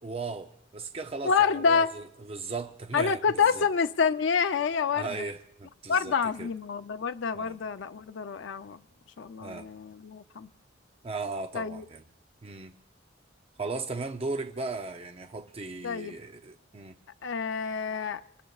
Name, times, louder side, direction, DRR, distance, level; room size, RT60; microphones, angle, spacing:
voice 1, 0.0-3.7 4.9-6.5 7.3-7.6 9.4-9.7 11.0-12.0 12.4-12.7 13.6-16.9, right 3 dB, 30° right, 0.6 m, -37 dB
voice 2, 1.2-1.9 2.9-5.1 5.9-8.8 9.2-10.5 11.5-11.8 15.8-16.1 17.2-18.2, left 6 dB, 80° left, 0.5 m, -27 dB
26.5 x 20.5 x 2.4 m
head